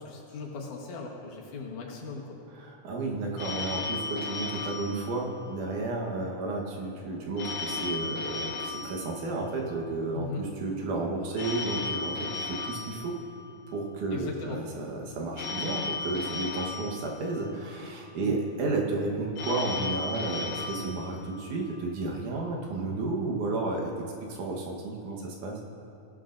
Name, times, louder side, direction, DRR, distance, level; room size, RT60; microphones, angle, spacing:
voice 1, 0.0-2.4 10.1-10.5 14.1-14.6 18.1-18.3, left 4 dB, 85° left, -1 dB, 2.9 m, -38 dB
voice 2, 2.5-13.2 13.7-25.6, right 2 dB, 85° right, 0 dB, 2.8 m, -32 dB
Telephone, 3.4-5.9 7.4-9.9 11.4-13.9 15.4-17.8 19.4-21.8, left 4 dB, 70° left, 2.1 m, -36 dB
17.0 x 11.0 x 2.6 m, 2.7 s
omnidirectional pair, 3.4 m